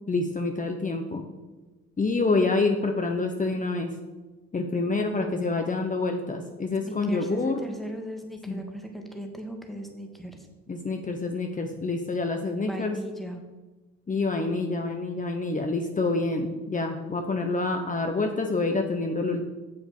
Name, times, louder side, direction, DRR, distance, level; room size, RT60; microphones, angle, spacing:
voice 1, 0.1-1.2 2.0-3.9 4.5-7.6 8.5-8.6 10.7-13.0 14.1-19.4, left 3 dB, 25° left, 4 dB, 0.9 m, -27 dB
voice 2, 6.8-10.5 12.7-13.4, equal, ahead, 3 dB, 1.8 m, -38 dB
7.2 x 6.8 x 6.5 m, 1.2 s
cardioid pair, 90°, 30 cm